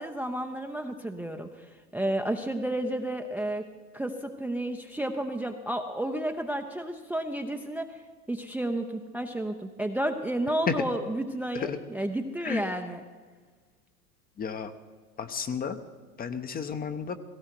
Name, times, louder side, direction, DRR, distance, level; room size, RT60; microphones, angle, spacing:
voice 1, 0.0-1.7 1.9-3.6 3.9-8.0 8.3-13.0, right 1 dB, 5° right, 5 dB, 0.7 m, -31 dB
voice 2, 14.4-14.7 15.2-15.8 16.2-17.2, left 6 dB, 20° left, 9 dB, 0.9 m, -31 dB
17.5 x 17.0 x 4.6 m, 1.4 s
hypercardioid pair, 95°, 44 cm